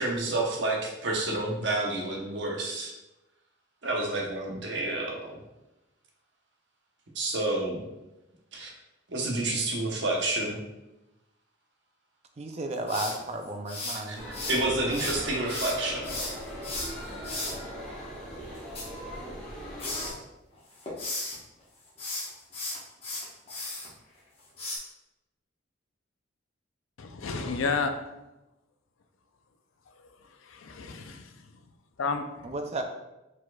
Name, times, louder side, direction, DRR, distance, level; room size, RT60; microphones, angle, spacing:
voice 1, 0.0-2.9 3.8-5.3 7.1-7.8 8.5-8.7 9.1-10.6 14.1-14.2 14.5-16.2, right 2 dB, 60° right, 0 dB, 0.8 m, -29 dB
voice 2, 12.4-14.2 32.4-32.8, right 2 dB, 30° right, 5 dB, 0.4 m, -33 dB
sound 1, 12.9-14.6 14.9-17.5 18.5-19.5 19.8-20.1 20.6-21.4 21.9-23.9 24.6-24.8, left 2 dB, 30° left, 1.1 m, -35 dB
sound 2, 14.1-20.1, equal, 5° left, 1.2 m, -39 dB
voice 3, 27.0-27.9 30.5-31.3 32.0-32.2, left 4 dB, 80° left, 7 dB, 0.5 m, -30 dB
4.8 x 4.1 x 2.3 m, 0.98 s
head